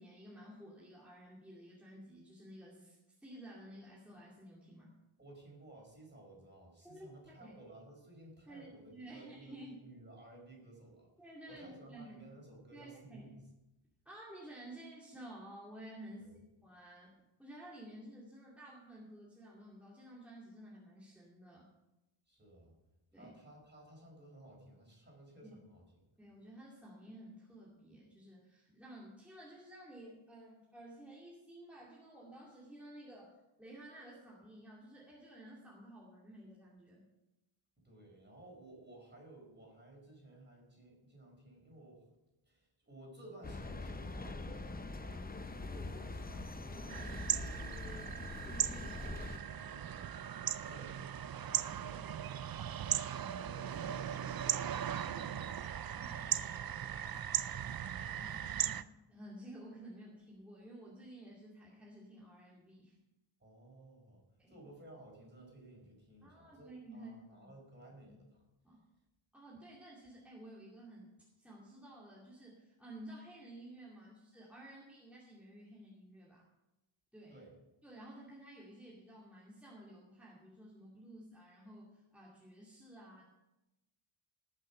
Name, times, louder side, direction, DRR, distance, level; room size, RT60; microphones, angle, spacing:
voice 1, 0.0-4.9 6.8-7.5 8.5-9.9 11.2-12.3 12.7-13.3 14.0-17.1 17.4-21.7 23.1-23.3 25.4-25.5 26.2-37.0 46.2-47.0 48.5-48.8 55.9-56.2 58.1-63.0 64.4-64.6 66.2-67.5 68.0-68.1 68.6-68.8 69.3-76.5 77.1-77.4 77.8-83.2, right 1 dB, 5° right, -6 dB, 2.6 m, -53 dB
voice 2, 5.2-11.1 11.5-13.4 16.2-16.3 22.3-22.7 23.1-25.8 37.8-42.0 42.4-46.4 46.7-52.9 53.2-57.5 58.0-58.5 63.4-64.2 64.5-68.4 77.3-77.5, right 1 dB, 20° right, -1 dB, 4.8 m, -57 dB
sound 1, 43.4-49.4, left 2 dB, 20° left, 0.7 m, -43 dB
sound 2, 46.9-58.8, right 9 dB, 50° right, 0.5 m, -38 dB
19.5 x 6.7 x 5.8 m, 0.96 s
wide cardioid pair, 150°, 50 cm